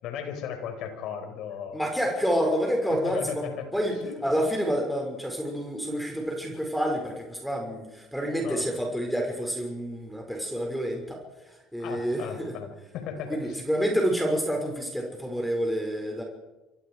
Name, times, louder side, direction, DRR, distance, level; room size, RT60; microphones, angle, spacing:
voice 1, 0.0-1.8 2.9-3.7 4.0-4.2 8.4-8.7 11.8-13.6, left 8 dB, 65° left, 6 dB, 5.5 m, -36 dB
voice 2, 1.7-3.5 3.7-4.0 4.2-11.2 11.7-12.5 13.3-16.2, equal, ahead, 2 dB, 6.6 m, -28 dB
28.0 x 25.0 x 5.1 m, 1.1 s
hypercardioid pair, 60°, 0 cm